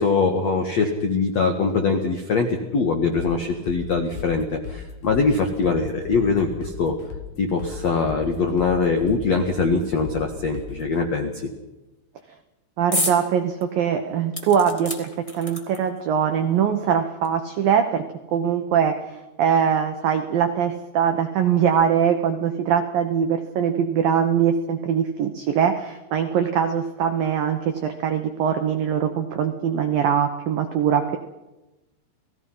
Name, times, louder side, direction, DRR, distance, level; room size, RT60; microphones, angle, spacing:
voice 1, 0.0-7.0 7.4-11.5, left 4 dB, 85° left, 4 dB, 1.5 m, -22 dB
sound 1, 3.2-11.0, left 6 dB, 60° left, 2.3 m, -38 dB
voice 2, 12.8-18.0 18.3-31.2, right 8 dB, 80° right, 6 dB, 2.0 m, -22 dB
sound 2, 12.9-13.2 13.6-13.7 14.3-16.0 16.9-17.0 17.2-17.3, left 1 dB, 35° left, 0.5 m, -29 dB
29.5 x 18.5 x 5.7 m, 1.0 s
omnidirectional pair, 5.8 m